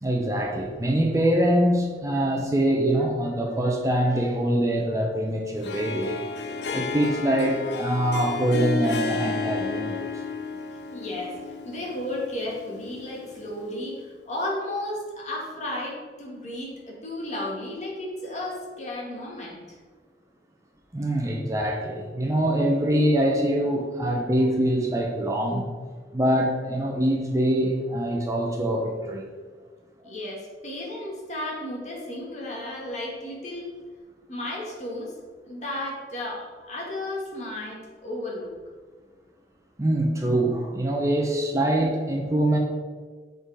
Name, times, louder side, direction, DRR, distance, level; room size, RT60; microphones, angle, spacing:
voice 1, 0.0-6.2 6.7-10.1 20.9-25.7 26.1-29.2 39.8-42.6, right 1 dB, 20° right, 1 dB, 0.7 m, -24 dB
Harp, 5.6-13.8, left 3 dB, 70° left, 0.5 m, -32 dB
voice 2, 10.9-19.8 30.0-33.7 34.3-35.1 35.4-38.5, left 1 dB, 40° left, -3 dB, 1.8 m, -34 dB
7.8 x 3.9 x 4.8 m, 1.5 s
head